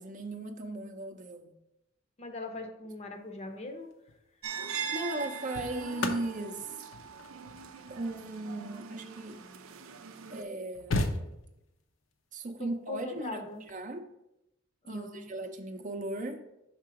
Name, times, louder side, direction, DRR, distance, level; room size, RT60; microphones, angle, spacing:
voice 1, 0.0-1.5 4.9-6.8 7.9-9.4 10.3-11.2 12.3-13.4 13.7-14.1 14.9-16.4, right 2 dB, 40° right, 6 dB, 0.5 m, -37 dB
voice 2, 2.2-3.9 12.6-13.6 14.8-15.3, left 2 dB, 30° left, 5 dB, 0.6 m, -41 dB
sound 1, 3.9-4.2 5.1-9.7 10.3-10.4 10.5-11.8 13.5-13.7, left 2 dB, 70° left, 0.6 m, -36 dB
sound 2, 4.4-10.4, right 6 dB, 90° right, 0.5 m, -41 dB
5.9 x 3.8 x 4.7 m, 0.88 s
head